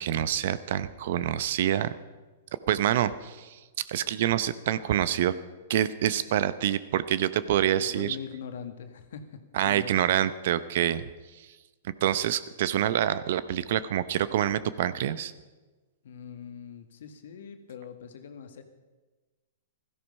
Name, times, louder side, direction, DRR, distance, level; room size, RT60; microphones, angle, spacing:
voice 1, 0.0-1.9 2.7-3.6 3.9-5.3 5.7-8.2 9.6-11.1 12.0-15.3, right 11 dB, 60° right, 15 dB, 0.8 m, -26 dB
voice 2, 7.7-9.9 16.0-18.6, left 7 dB, 70° left, 8 dB, 1.7 m, -42 dB
16.0 x 13.5 x 5.4 m, 1.3 s
hypercardioid pair, 120°, 0 cm